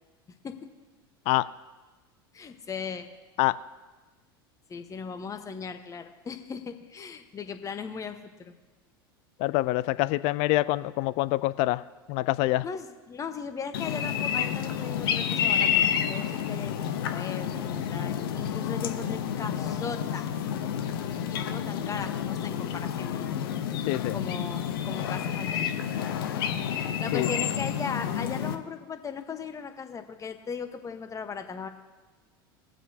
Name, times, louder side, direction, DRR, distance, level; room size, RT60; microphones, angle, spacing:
voice 1, 2.3-3.1 4.7-8.5 12.6-15.8 16.1-20.3 21.3-23.3 24.1-25.7 27.0-31.7, left 5 dB, 25° left, 7 dB, 1.1 m, -38 dB
voice 2, 9.4-11.8 12.1-12.6 23.9-24.2 27.1-27.3, left 18 dB, 55° left, 16 dB, 0.4 m, -25 dB
sound 1, 13.7-28.5, left 8 dB, 70° left, 0.9 m, -29 dB
20.0 x 7.4 x 2.8 m, 1.3 s
hypercardioid pair, 85°, 13 cm